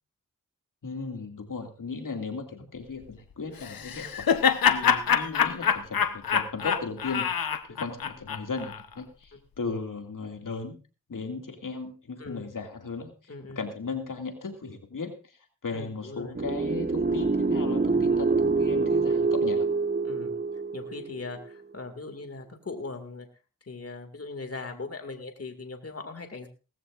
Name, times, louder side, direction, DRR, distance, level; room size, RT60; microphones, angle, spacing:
voice 1, 0.8-10.8 11.1-19.7, left 4 dB, 65° left, 4 dB, 2.4 m, -36 dB
Laughter, 3.6-8.8, left 7 dB, 90° left, 1.0 m, -25 dB
voice 2, 9.3-9.8 12.2-12.5 13.3-13.6 15.7-16.4 20.0-20.3 20.7-23.3 23.7-26.5, left 3 dB, 45° left, 6 dB, 2.3 m, -40 dB
sound 1, 16.3-21.4, right 4 dB, 30° right, 1.6 m, -26 dB
18.5 x 15.0 x 2.5 m, 0.33 s
cardioid pair, 55°, 34 cm